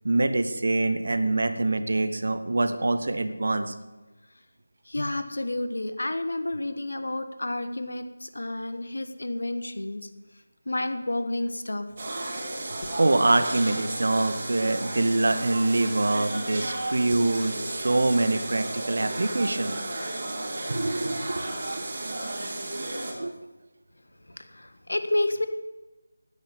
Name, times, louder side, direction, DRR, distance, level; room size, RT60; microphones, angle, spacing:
voice 1, 0.0-3.7 13.0-19.8 20.7-22.4 23.2-23.3, right 2 dB, 55° right, 10 dB, 1.3 m, -25 dB
voice 2, 4.9-10.1 10.6-11.9 12.8-13.0 17.1-17.2 24.4-25.5, left 1 dB, 70° left, 10 dB, 1.6 m, -30 dB
sound 1, 12.0-23.1, right 2 dB, 40° right, 3.5 m, -33 dB
12.5 x 10.5 x 8.2 m, 1.1 s
figure-of-eight pair, 165°, 0 cm